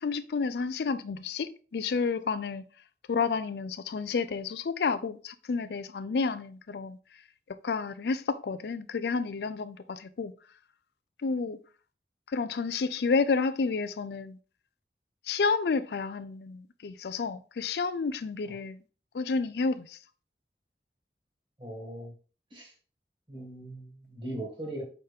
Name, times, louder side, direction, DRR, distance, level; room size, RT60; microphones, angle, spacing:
voice 1, 0.0-2.6 3.1-7.0 7.5-10.3 11.2-11.6 12.3-14.4 15.2-18.8 19.1-20.0, left 4 dB, 70° left, 0.4 m, -30 dB
voice 2, 21.6-22.1 22.5-22.7 23.3-24.8, right 1 dB, 30° right, 2.1 m, -39 dB
5.5 x 5.1 x 3.5 m
head